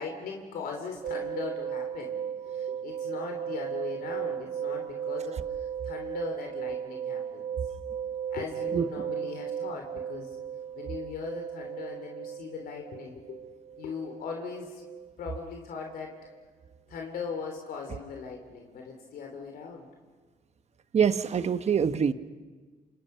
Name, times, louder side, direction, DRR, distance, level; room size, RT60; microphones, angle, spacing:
voice 1, 0.0-2.2 2.5-7.5 8.3-10.4 10.8-13.4 13.8-14.8 15.2-16.2 16.9-19.9, left 5 dB, 70° left, 2 dB, 3.4 m, -39 dB
sound 1, 1.0-16.0 16.2-16.4, right 8 dB, 65° right, 1.1 m, -36 dB
voice 2, 20.9-22.1, right 7 dB, 45° right, 11 dB, 1.2 m, -24 dB
28.5 x 27.0 x 5.8 m, 1.4 s
cardioid pair, 80°, 16 cm